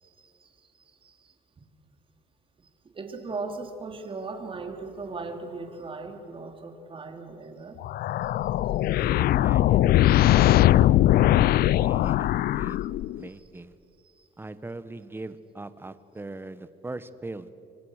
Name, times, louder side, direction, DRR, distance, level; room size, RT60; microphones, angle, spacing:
voice 1, 0.0-1.6 2.6-2.7 2.9-7.8 14.1-14.3, right 3 dB, 30° right, 5 dB, 3.3 m, -38 dB
sound 1, 7.8-13.3, left 14 dB, 65° left, 0.5 m, -21 dB
voice 2, 9.0-11.3 11.8-12.8 13.1-13.7 14.4-17.5, right 2 dB, 15° right, 13 dB, 1.3 m, -40 dB
27.5 x 24.0 x 6.6 m, 2.8 s
cardioid pair, 110°, 17 cm